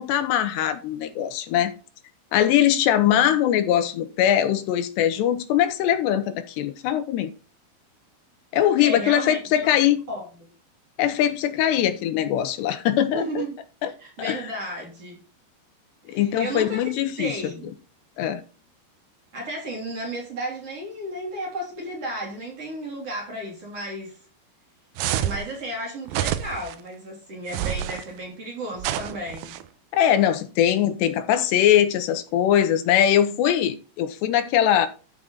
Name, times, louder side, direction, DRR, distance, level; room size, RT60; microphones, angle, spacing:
voice 1, 0.0-1.7 2.3-7.3 8.5-10.1 11.0-13.4 13.8-13.9 14.2-14.4 16.1-17.3 18.2-18.4 29.9-34.9, left 10 dB, 80° left, 3.0 m, -21 dB
voice 2, 8.8-9.7 10.1-10.5 13.1-13.6 14.0-15.2 16.1-16.9 17.2-17.7 19.3-24.2 25.2-29.6, right 1 dB, 35° right, 3.9 m, -33 dB
sound 1, 25.0-25.5 26.1-26.7 27.5-28.0 28.8-29.6, right 11 dB, 80° right, 2.1 m, -28 dB
13.0 x 6.0 x 4.0 m
omnidirectional pair, 5.0 m